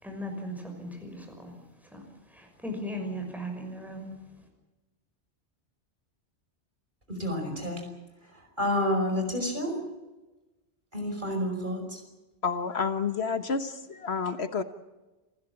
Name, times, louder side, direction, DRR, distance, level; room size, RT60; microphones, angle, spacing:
voice 1, 0.0-1.5 1.9-2.0 2.3-4.1, equal, ahead, 3 dB, 5.9 m, -37 dB
voice 2, 7.1-7.9 8.6-9.8 10.9-12.0, left 1 dB, 45° right, 4 dB, 5.5 m, -29 dB
voice 3, 12.4-14.6, left 5 dB, 70° left, 10 dB, 1.4 m, -29 dB
28.5 x 15.5 x 8.9 m, 1.1 s
omnidirectional pair, 1.1 m